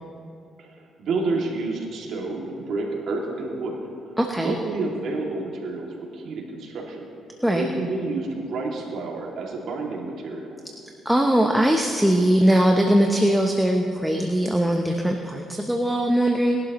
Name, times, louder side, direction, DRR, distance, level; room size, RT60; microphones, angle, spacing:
voice 1, 0.6-3.8 4.4-7.1 7.5-10.5, right 3 dB, 75° right, -2 dB, 2.5 m, -29 dB
voice 2, 4.2-4.5 7.4-7.6 11.0-16.6, right 1 dB, 5° right, 2 dB, 0.9 m, -20 dB
20.5 x 11.5 x 3.1 m, 2.5 s
cardioid pair, 90°, 0 cm